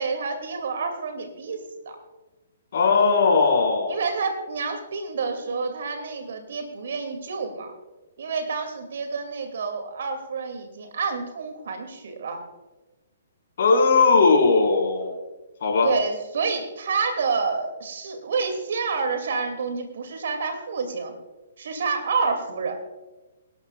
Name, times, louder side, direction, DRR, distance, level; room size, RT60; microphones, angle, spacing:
voice 1, 0.0-1.6 1.9-2.0 3.9-7.7 8.2-12.4 15.8-21.1 21.6-22.8, right 4 dB, 60° right, 6 dB, 2.4 m, -28 dB
voice 2, 2.7-4.0 13.6-15.1 15.6-15.9, left 4 dB, 55° left, 0 dB, 4.5 m, -18 dB
24.0 x 12.0 x 2.4 m, 1.1 s
figure-of-eight pair, 125°, 0 cm